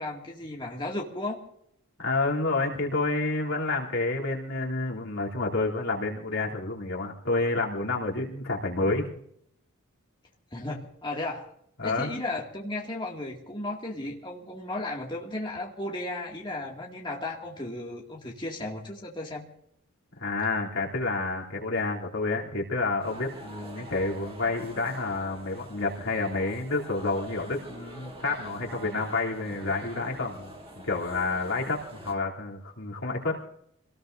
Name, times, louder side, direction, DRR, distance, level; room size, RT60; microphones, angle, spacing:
voice 1, 0.0-1.4 10.5-11.5 11.8-19.4, left 2 dB, 20° left, -2 dB, 2.2 m, -35 dB
voice 2, 2.0-9.1 11.8-12.1 20.2-30.5 30.8-33.4, left 3 dB, 65° left, -3 dB, 3.2 m, -29 dB
sound 1, 23.0-32.1, right 1 dB, 25° right, 2.6 m, -45 dB
26.5 x 19.5 x 2.7 m, 0.71 s
head